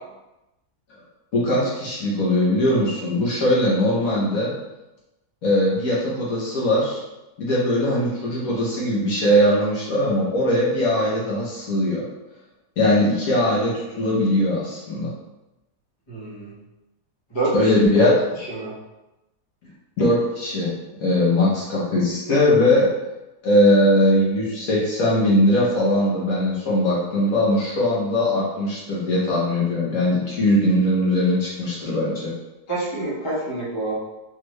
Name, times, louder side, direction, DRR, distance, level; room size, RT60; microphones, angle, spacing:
voice 1, 1.3-4.5 5.4-7.0 7.4-12.0 12.8-15.1 17.5-18.1 20.0-20.7 21.0-22.9 23.4-32.3, left 1 dB, 65° left, -6 dB, 1.4 m, -20 dB
voice 2, 16.1-16.5 17.3-17.5 18.0-18.1 18.4-18.7 32.7-33.9, right 2 dB, 20° left, -8 dB, 1.0 m, -27 dB
4.4 x 2.5 x 3.1 m, 0.99 s
omnidirectional pair, 1.7 m